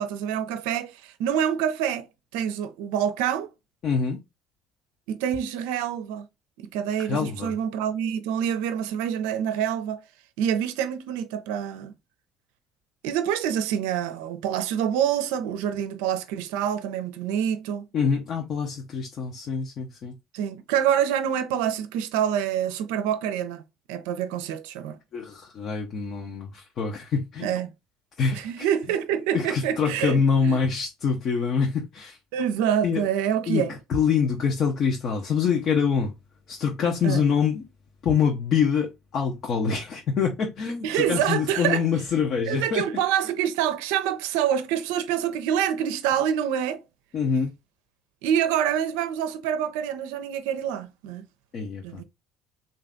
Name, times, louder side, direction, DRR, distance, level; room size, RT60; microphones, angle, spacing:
voice 1, 0.0-2.1 2.3-3.5 5.1-6.3 6.6-10.0 10.4-11.9 13.0-17.8 20.3-23.6 23.9-25.0 27.4-27.7 28.3-30.6 32.3-33.7 37.0-37.2 40.8-41.8 42.5-46.8 48.2-51.3 51.8-52.0, right 9 dB, 75° right, 0.5 m, -26 dB
voice 2, 3.8-4.2 7.1-7.5 17.9-20.2 25.1-27.6 28.2-28.7 29.3-32.2 32.8-33.0 33.5-33.6 33.9-36.1 36.5-37.6 38.0-42.8 47.1-47.5 51.5-52.0, left 6 dB, 55° left, 0.9 m, -25 dB
3.3 x 2.8 x 3.7 m
hypercardioid pair, 70°, 0 cm